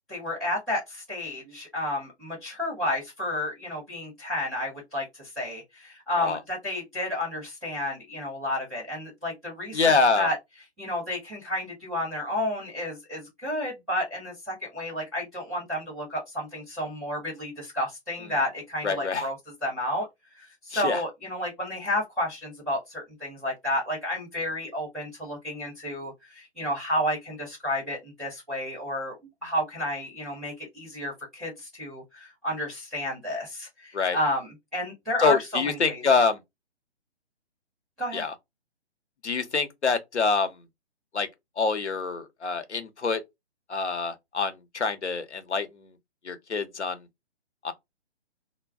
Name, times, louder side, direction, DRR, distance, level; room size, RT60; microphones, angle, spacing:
voice 1, 0.1-10.4 10.8-19.4 19.6-20.1 20.4-29.1 29.4-36.0 38.0-38.2, left 1 dB, ahead, 0.4 m, -31 dB
voice 2, 9.7-10.3 18.8-19.3 20.7-21.0 33.9-34.2 35.2-36.4 38.1-38.3 39.2-40.6 41.1-41.3 41.6-43.2 43.7-45.9 46.2-47.0 47.6-47.7, left 4 dB, 80° left, 0.8 m, -26 dB
2.2 x 2.2 x 3.4 m
figure-of-eight pair, 135°, 33 cm